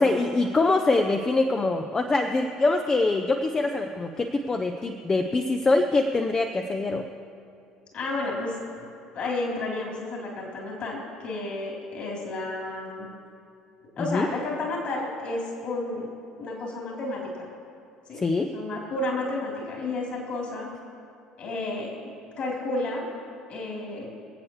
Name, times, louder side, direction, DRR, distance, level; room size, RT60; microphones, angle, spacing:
voice 1, 0.0-7.0 14.0-14.3 18.1-18.5, left 3 dB, 20° left, 5 dB, 0.7 m, -24 dB
voice 2, 7.9-8.9 9.1-13.1 14.0-16.1 16.4-17.5 18.1-18.2 18.5-20.7 21.4-21.9 22.4-23.1 23.5-24.1, left 2 dB, 45° left, -2 dB, 3.7 m, -31 dB
25.5 x 8.6 x 3.3 m, 2.4 s
figure-of-eight pair, 60°, 3 cm